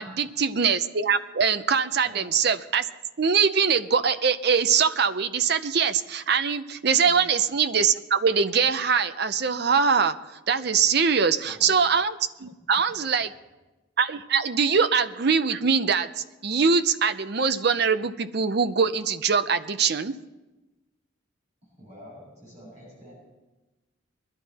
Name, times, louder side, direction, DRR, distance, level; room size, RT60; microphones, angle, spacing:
voice 1, 0.0-2.9 3.2-10.2 10.5-13.3 14.0-16.1 16.4-20.1, right 6 dB, 55° right, 11 dB, 0.6 m, -23 dB
voice 2, 11.4-11.8 21.6-23.1, equal, 35° right, -5 dB, 6.5 m, -47 dB
21.5 x 12.5 x 4.2 m, 1.1 s
head